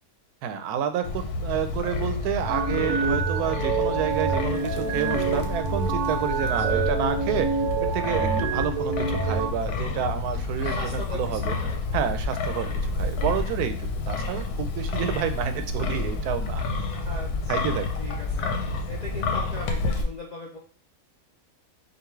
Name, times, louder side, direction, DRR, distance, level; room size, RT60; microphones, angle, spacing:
voice 1, 0.4-7.5 7.8-11.5 11.9-16.6 17.5-17.9, right 8 dB, 90° right, 8 dB, 1.1 m, -29 dB
Wind, 1.0-20.0, left 3 dB, 85° left, 1.2 m, -29 dB
sound 1, 2.5-9.5, right 5 dB, 70° right, 0.9 m, -27 dB
voice 2, 6.4-6.9 10.6-11.8 12.6-12.8 16.9-18.6 18.8-20.6, left 2 dB, 50° left, -3 dB, 0.5 m, -39 dB
5.2 x 2.5 x 3.1 m, 0.41 s
omnidirectional pair, 1.6 m